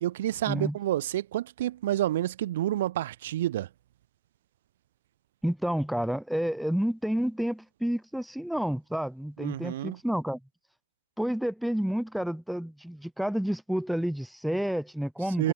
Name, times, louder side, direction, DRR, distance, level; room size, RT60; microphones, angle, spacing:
voice 1, 0.0-3.7 9.4-10.0 15.4-15.5, right 13 dB, 55° right, 2.0 m, -29 dB
voice 2, 5.4-10.4 11.2-15.5, equal, ahead, 1.9 m, -30 dB
hypercardioid pair, 145°, 0 cm